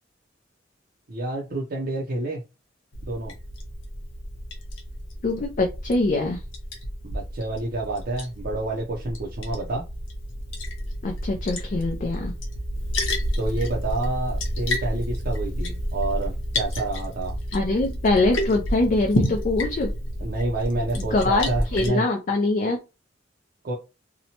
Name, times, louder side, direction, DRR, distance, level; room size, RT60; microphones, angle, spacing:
voice 1, 1.1-2.4 3.0-3.3 7.0-9.8 13.4-17.3 20.2-22.0 23.6-23.7, right 2 dB, 50° right, -3 dB, 0.5 m, -28 dB
Liquid, 2.9-21.9, equal, 85° left, 0.8 m, -30 dB
voice 2, 5.2-6.4 11.0-12.3 17.5-19.9 20.9-22.8, left 2 dB, 40° left, 1 dB, 0.4 m, -23 dB
2.8 x 2.1 x 2.8 m, 0.28 s
head